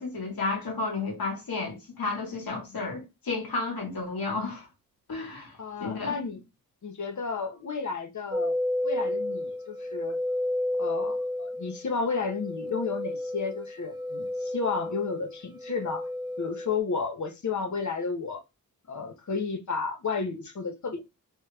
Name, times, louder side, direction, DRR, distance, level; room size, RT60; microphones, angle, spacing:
voice 1, 0.0-4.7 5.1-6.2, left 3 dB, 70° left, 1.6 m, -32 dB
voice 2, 5.6-6.4 6.8-8.6 8.8-10.2 10.8-16.1 16.4-18.4 18.9-21.0, left 4 dB, 50° left, 0.8 m, -32 dB
sound 1, 8.3-16.8, left 1 dB, 15° right, 0.3 m, -32 dB
3.0 x 2.4 x 3.2 m
cardioid pair, 55°, 36 cm